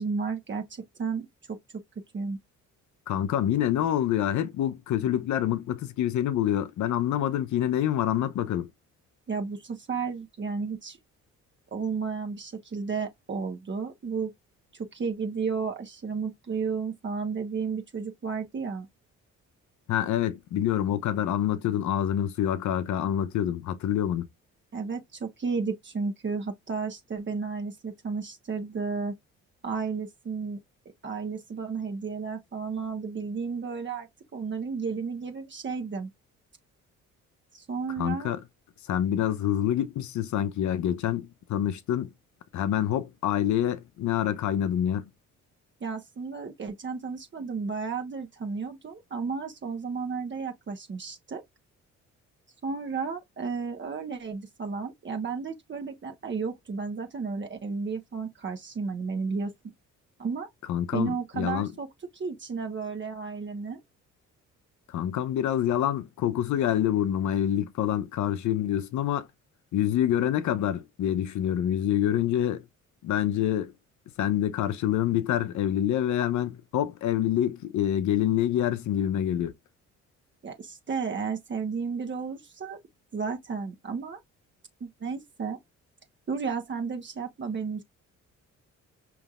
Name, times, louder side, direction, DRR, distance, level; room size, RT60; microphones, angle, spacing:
voice 1, 0.0-1.6 2.1-2.4 9.3-11.0 11.7-14.3 14.7-18.9 24.7-29.1 29.6-30.6 31.0-36.1 37.5-38.3 45.8-51.4 52.6-59.5 60.2-60.5 60.9-61.9 62.1-63.8 80.4-82.8 83.1-84.2 84.8-85.6 86.3-87.8, right 5 dB, 40° right, 1.2 m, -33 dB
voice 2, 3.1-8.7 19.9-24.3 38.0-38.4 38.9-42.1 42.5-45.1 60.7-61.7 64.9-69.3 69.7-72.7 73.0-73.7 74.2-79.5, left 11 dB, 75° left, 0.8 m, -26 dB
5.1 x 3.3 x 2.4 m
cardioid pair, 90°, 30 cm